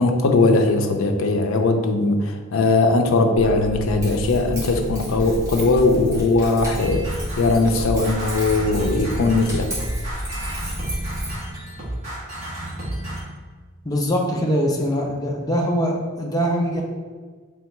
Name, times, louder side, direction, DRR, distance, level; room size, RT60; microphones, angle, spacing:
voice 1, 0.0-9.7, left 3 dB, 85° left, 5 dB, 0.4 m, -19 dB
Keys jangling, 3.4-11.3, equal, 15° right, 1.4 m, -31 dB
sound 1, 6.7-13.2, right 1 dB, 35° right, 1.3 m, -32 dB
voice 2, 13.8-16.8, equal, 20° left, 0 dB, 0.5 m, -22 dB
3.5 x 3.3 x 3.1 m, 1.5 s
head